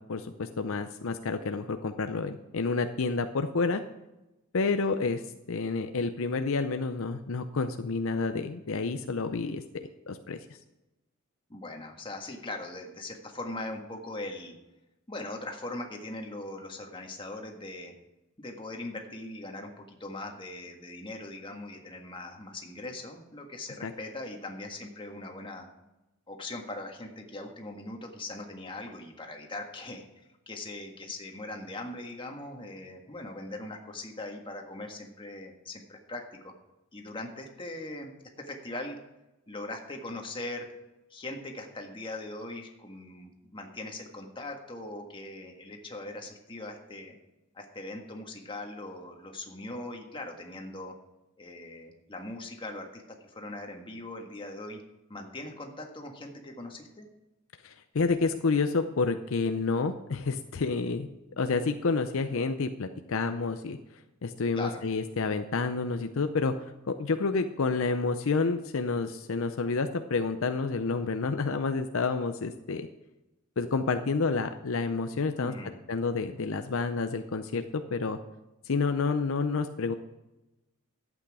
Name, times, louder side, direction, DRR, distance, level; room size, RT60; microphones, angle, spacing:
voice 1, 0.1-3.8 4.5-5.2 5.5-10.4 23.8-23.9 57.6-61.1 61.4-63.8 64.2-72.9 73.6-75.5 75.9-78.2 78.6-79.9, left 4 dB, 65° left, 8 dB, 0.6 m, -29 dB
voice 2, 11.5-14.5 15.1-17.9 18.4-25.7 26.3-36.5 36.9-39.0 39.5-40.7 41.1-47.1 47.5-50.9 51.4-54.8 55.1-57.1 64.5-64.8 75.4-75.8, left 2 dB, 25° left, 2 dB, 1.6 m, -40 dB
12.0 x 8.4 x 4.9 m, 0.98 s
head